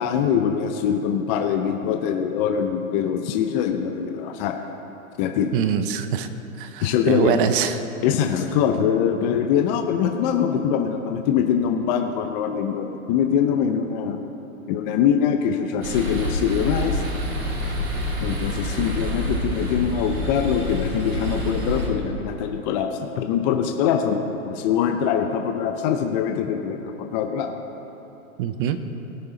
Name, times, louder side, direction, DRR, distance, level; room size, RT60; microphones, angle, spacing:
voice 1, 0.0-4.6 5.2-5.5 6.8-7.4 8.0-14.2 14.7-17.0 18.2-27.5, left 8 dB, 30° left, 5 dB, 0.6 m, -23 dB
voice 2, 5.5-6.3 6.6-7.8 28.4-28.8, right 9 dB, 40° right, 10 dB, 0.7 m, -23 dB
sound 1, 15.8-21.9, left 1 dB, 80° right, 2.6 m, -27 dB
18.0 x 6.7 x 3.9 m, 3.0 s
hypercardioid pair, 130°, 43 cm